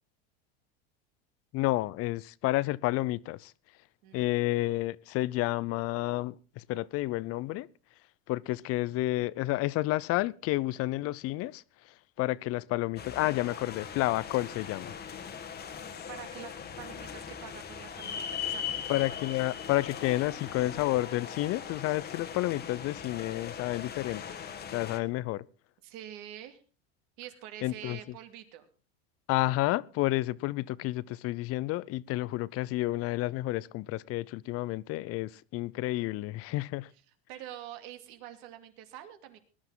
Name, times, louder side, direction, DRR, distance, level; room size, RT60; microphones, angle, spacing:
voice 1, 1.5-3.5 4.1-7.7 8.3-11.6 12.2-14.9 18.9-24.2 24.7-25.4 27.6-28.0 29.3-36.9, left 18 dB, 50° left, 0.6 m, -30 dB
voice 2, 4.0-4.4 16.1-19.2 25.8-26.6 27.2-28.7 36.9-37.0 37.3-39.4, right 11 dB, 65° right, 2.6 m, -46 dB
Indoor Pool Ambience in Brazil, 13.0-25.0, left 8 dB, 30° left, 1.5 m, -40 dB
20.0 x 11.5 x 3.8 m
supercardioid pair, 125°, 31 cm